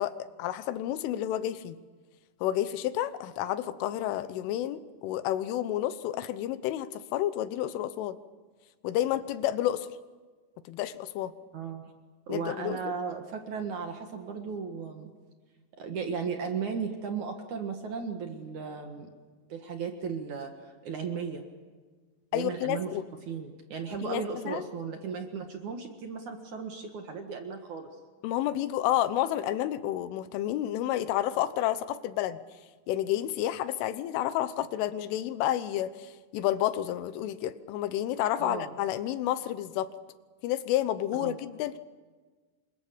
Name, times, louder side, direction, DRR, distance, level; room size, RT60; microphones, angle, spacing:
voice 1, 0.0-1.8 2.4-8.2 8.8-9.9 10.7-11.3 12.3-12.9 22.3-23.1 24.0-24.6 28.2-32.4 32.9-39.9 40.4-41.8, left 12 dB, 80° left, 13 dB, 3.4 m, -30 dB
voice 2, 11.5-11.9 12.3-15.1 15.8-19.1 19.5-21.4 22.3-22.9 23.3-27.9 38.4-38.7 41.2-41.4, right 6 dB, 60° right, 4 dB, 2.2 m, -36 dB
28.5 x 24.0 x 7.0 m, 1.4 s
omnidirectional pair, 5.7 m